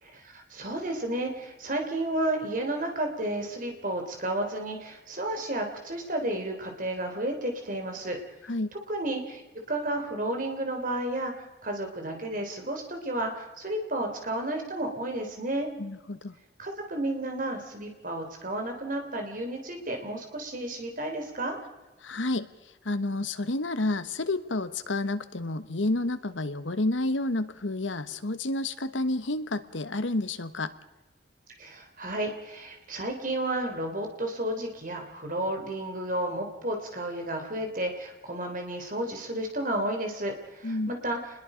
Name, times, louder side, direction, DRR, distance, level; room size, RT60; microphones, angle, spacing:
voice 1, 0.0-8.2 8.9-9.4 9.7-15.7 16.6-21.6 31.6-41.2, right 1 dB, 45° right, 3 dB, 3.8 m, -32 dB
voice 2, 15.8-16.3 22.0-22.5 22.8-30.7 40.6-40.9, left 2 dB, 85° left, 11 dB, 1.3 m, -30 dB
26.5 x 21.0 x 5.2 m, 1.1 s
head